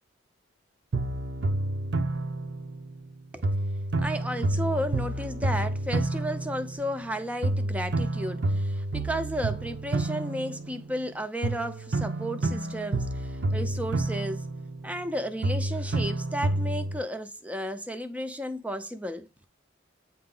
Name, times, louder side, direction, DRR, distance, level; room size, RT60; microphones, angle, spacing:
sound 1, 0.9-3.1 3.4-7.1 7.4-11.1 11.4-15.1 15.4-17.0, right 2 dB, 65° right, 0.7 m, -29 dB
voice 1, 4.0-14.5 14.8-19.3, equal, 5° right, 0.5 m, -33 dB
8.5 x 2.9 x 3.8 m
head